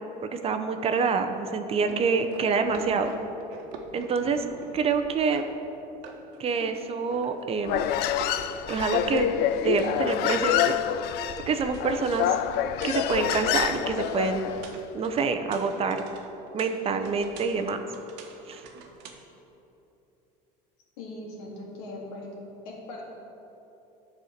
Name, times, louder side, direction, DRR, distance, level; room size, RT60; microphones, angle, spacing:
voice 1, 0.2-3.1 3.9-4.5 4.7-5.4 6.4-7.8 8.7-9.3 9.6-10.7 11.5-12.4 12.8-14.5 14.9-16.0 16.5-17.8 18.5-18.6, right 5 dB, 30° right, 7 dB, 0.6 m, -26 dB
sound 1, 1.7-5.8 6.0-7.6 7.9-11.2 11.4-19.1, right 4 dB, 75° right, 1.1 m, -45 dB
Human voice, 7.6-14.7, left 10 dB, 60° left, 0.4 m, -27 dB
voice 2, 21.0-22.3 22.6-23.1, left 2 dB, 90° left, -2 dB, 2.1 m, -40 dB
10.0 x 4.3 x 6.5 m, 3.0 s
supercardioid pair, 120°, 19 cm